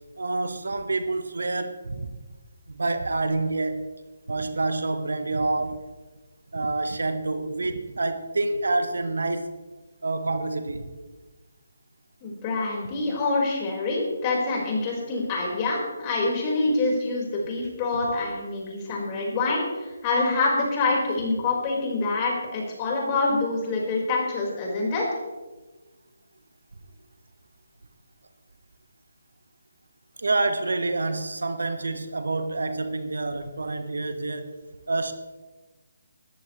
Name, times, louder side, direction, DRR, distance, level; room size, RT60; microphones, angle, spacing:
voice 1, 0.2-2.2 2.7-3.8 4.3-5.8 6.5-9.5 10.0-10.9 30.2-34.5 34.9-35.1, right 2 dB, 70° right, 8 dB, 1.3 m, -27 dB
voice 2, 12.2-25.1, left 3 dB, 25° left, -2 dB, 5.0 m, -26 dB
19.5 x 14.0 x 3.3 m, 1.2 s
figure-of-eight pair, 145°, 0 cm